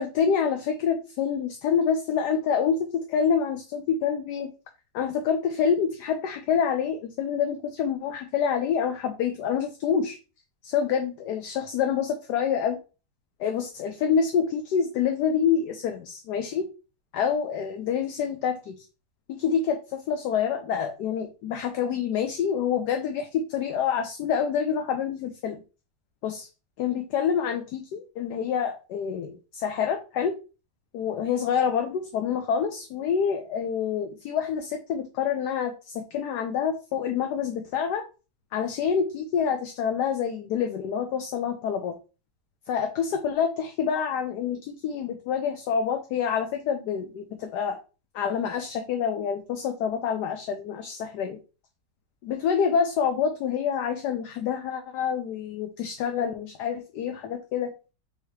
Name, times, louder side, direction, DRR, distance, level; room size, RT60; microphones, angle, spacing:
voice 1, 0.0-4.5 4.9-10.2 10.6-12.8 13.4-16.7 17.1-18.7 19.3-25.6 26.2-26.5 26.8-30.3 30.9-38.0 38.5-41.9 42.7-47.8 48.1-51.4 52.2-57.7, left 7 dB, 70° left, 5 dB, 1.1 m, -27 dB
5.6 x 3.0 x 3.1 m, 0.33 s
omnidirectional pair, 1.9 m